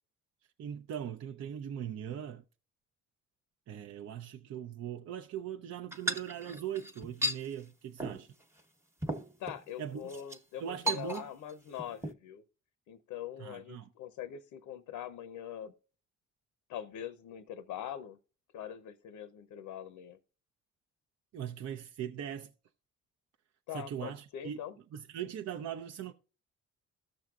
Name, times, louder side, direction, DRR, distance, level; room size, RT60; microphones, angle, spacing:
voice 1, 0.6-2.4 3.7-8.3 9.8-10.1 10.6-11.3 13.4-13.9 21.3-22.5 23.7-24.6 24.9-26.1, right 9 dB, 55° right, 0.6 m, -40 dB
sound 1, 5.9-7.4 8.0-8.2 8.6-8.7 9.0-9.6 10.1-10.4 10.9-11.5 11.8-12.1, equal, 10° right, 0.9 m, -35 dB
voice 2, 9.4-12.4 12.9-15.7 16.7-18.2 18.5-20.2 23.7-24.7, left 10 dB, 85° left, 0.7 m, -43 dB
14.5 x 6.2 x 2.3 m
cardioid pair, 90°, 30 cm